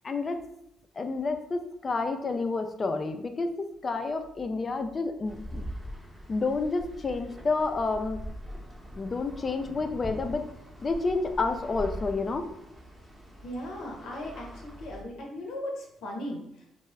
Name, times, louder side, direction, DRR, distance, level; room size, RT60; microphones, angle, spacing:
voice 1, 0.0-0.4 1.0-5.7 6.3-8.2 8.9-10.4 10.8-12.5, left 3 dB, 40° left, 7 dB, 0.3 m, -29 dB
sound 1, 5.2-15.0, equal, ahead, 0.7 m, -42 dB
voice 2, 13.4-16.7, left 1 dB, 75° left, 0 dB, 0.6 m, -37 dB
2.2 x 2.0 x 3.4 m, 0.77 s
supercardioid pair, 70°, 0 cm